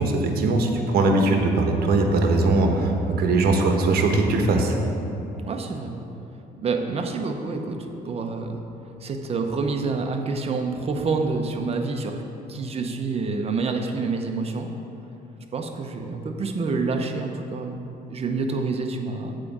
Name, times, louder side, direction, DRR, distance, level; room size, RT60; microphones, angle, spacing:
voice 1, 0.0-4.8, right 2 dB, 65° right, 3 dB, 1.1 m, -20 dB
voice 2, 5.5-6.0 6.6-8.6 9.0-12.2 12.5-14.7 15.5-17.8 18.1-19.3, right 4 dB, 35° right, 4 dB, 0.9 m, -27 dB
7.6 x 4.9 x 7.3 m, 3.0 s
cardioid pair, 110°, 17 cm